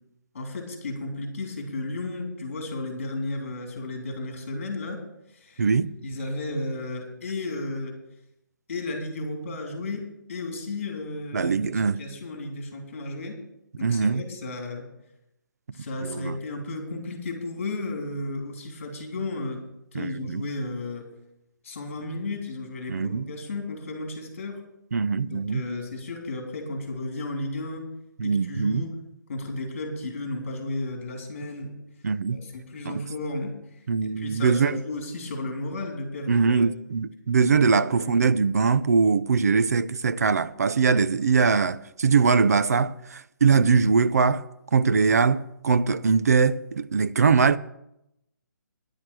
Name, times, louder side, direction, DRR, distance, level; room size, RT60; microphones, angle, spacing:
voice 1, 0.3-5.0 5.3-5.7 6.0-8.0 8.7-10.0 10.3-13.4 13.8-14.9 15.7-19.6 19.9-21.1 21.6-24.6 25.3-27.9 28.2-29.0 29.3-31.7 32.3-36.7 37.7-38.1, left 2 dB, 40° left, 3.2 m, -33 dB
voice 2, 5.6-5.9 11.3-12.0 13.8-14.2 16.0-16.4 19.9-20.4 22.9-23.3 24.9-25.6 28.2-28.8 32.0-32.4 32.9-33.0 33.9-34.8 36.3-44.4 44.7-47.6, right 5 dB, 50° right, 0.5 m, -22 dB
10.5 x 7.8 x 7.5 m
hypercardioid pair, 180°, 11 cm